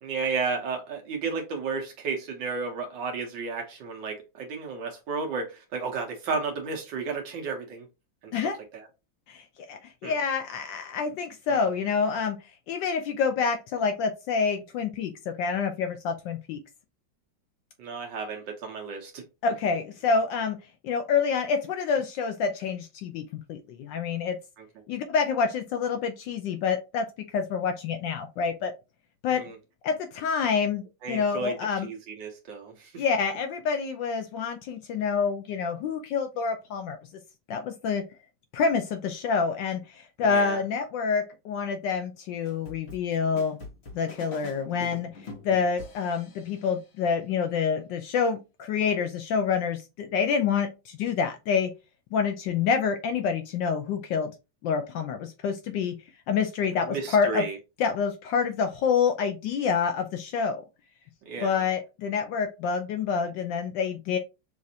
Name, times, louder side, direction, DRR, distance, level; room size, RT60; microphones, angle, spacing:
voice 1, 0.0-7.9 8.2-8.3 8.7-8.9 10.0-10.1 11.5-11.6 17.8-19.2 24.6-24.7 29.3-29.6 31.0-31.5 31.8-33.0 40.2-40.6 56.8-57.6 61.3-61.7, right 4 dB, 75° right, 1.6 m, -33 dB
voice 2, 9.3-12.4 12.7-16.6 19.4-20.6 20.8-23.2 23.5-24.4 24.9-27.1 27.3-28.7 29.2-29.4 29.8-31.9 33.0-37.0 37.5-38.0 38.5-43.6 43.9-45.1 45.4-51.7 52.1-54.3 54.6-56.0 56.3-57.4 57.8-60.6 61.4-64.2, left 6 dB, 75° left, 1.3 m, -27 dB
sound 1, 42.4-46.8, left 2 dB, 40° left, 1.1 m, -44 dB
6.2 x 2.5 x 2.7 m
omnidirectional pair, 2.0 m